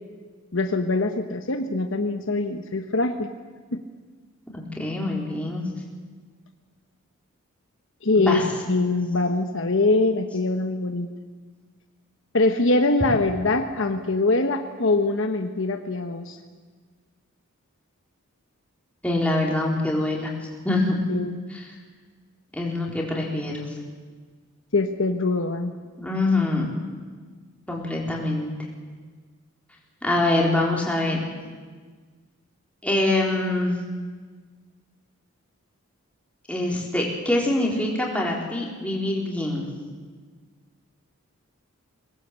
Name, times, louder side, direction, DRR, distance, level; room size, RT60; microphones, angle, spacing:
voice 1, 0.5-3.3 3.7-3.8 8.0-8.4 8.7-11.1 12.3-16.4 21.1-21.4 24.7-25.7, left 2 dB, 60° left, 6 dB, 1.1 m, -23 dB
voice 2, 4.5-5.7 8.1-8.5 19.0-20.3 20.6-21.0 21.5-21.7 22.5-23.7 26.0-26.7 27.7-28.5 30.0-31.2 32.8-33.8 36.5-39.7, left 2 dB, 5° left, -2 dB, 4.1 m, -24 dB
24.0 x 19.0 x 8.3 m, 1.5 s
head